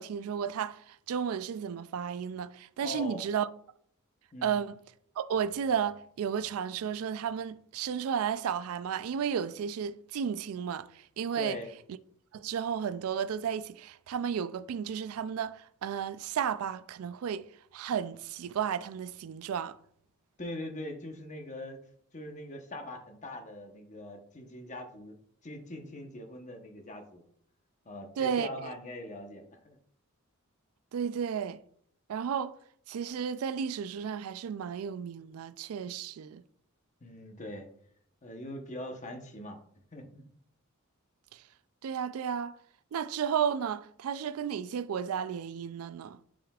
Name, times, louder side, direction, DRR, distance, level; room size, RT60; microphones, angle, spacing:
voice 1, 0.0-3.5 4.4-4.8 5.2-11.6 12.3-17.5 17.7-19.8 28.2-28.7 30.9-31.6 32.1-32.6 32.9-36.4 41.3-41.4 41.8-42.6 42.9-46.2, right 7 dB, 90° right, 0.3 m, -33 dB
voice 2, 2.8-3.2 4.3-4.6 11.4-11.7 20.4-21.8 22.1-25.2 25.4-27.3 27.8-29.8 37.0-37.7 38.2-39.6 39.9-40.2, left 1 dB, 35° left, 1.0 m, -42 dB
8.9 x 5.0 x 2.4 m
head